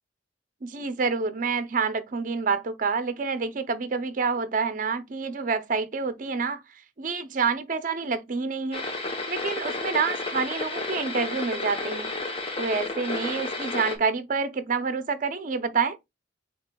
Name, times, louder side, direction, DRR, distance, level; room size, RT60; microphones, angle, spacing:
voice 1, 0.6-6.6 7.0-8.9 9.3-12.1 12.6-16.0, right 5 dB, 45° right, 0.5 m, -28 dB
sound 1, 8.7-14.0, left 3 dB, 30° left, 0.8 m, -32 dB
7.8 x 2.9 x 2.2 m
head